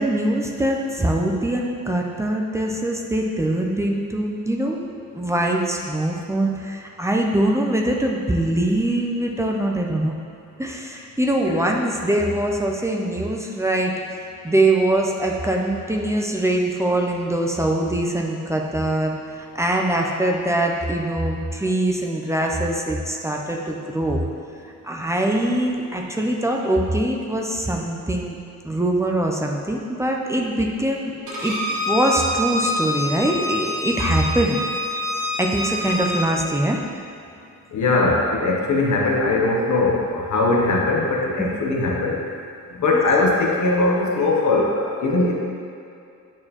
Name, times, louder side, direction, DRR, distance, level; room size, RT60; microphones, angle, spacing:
voice 1, 0.0-4.9 5.1-10.1 10.6-13.9 14.4-19.2 19.6-24.2 24.8-28.4 28.6-31.1 31.4-31.6 31.9-34.6 35.4-36.8 41.4-41.5 42.9-43.0, right 1 dB, 10° right, 0 dB, 0.3 m, -23 dB
Bowed string instrument, 31.3-36.2, left 1 dB, 60° right, 1.4 m, -26 dB
voice 2, 37.7-42.2 42.7-45.3, left 2 dB, 60° left, -2 dB, 0.8 m, -20 dB
8.4 x 4.5 x 2.9 m, 2.5 s
wide cardioid pair, 180°, 33 cm